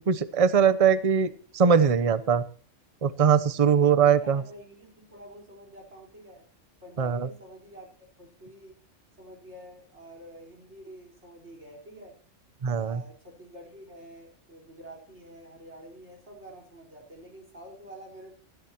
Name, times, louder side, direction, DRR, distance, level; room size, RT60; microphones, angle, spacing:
voice 1, 0.1-2.4 3.0-4.4 7.0-7.3 12.6-13.0, right 7 dB, 35° right, 14 dB, 0.8 m, -21 dB
voice 2, 3.6-6.4 6.8-7.9 8.2-8.8 9.2-12.1 12.7-18.3, right 1 dB, 65° right, 1 dB, 4.8 m, -48 dB
25.0 x 11.5 x 2.9 m, 0.41 s
omnidirectional pair, 1.3 m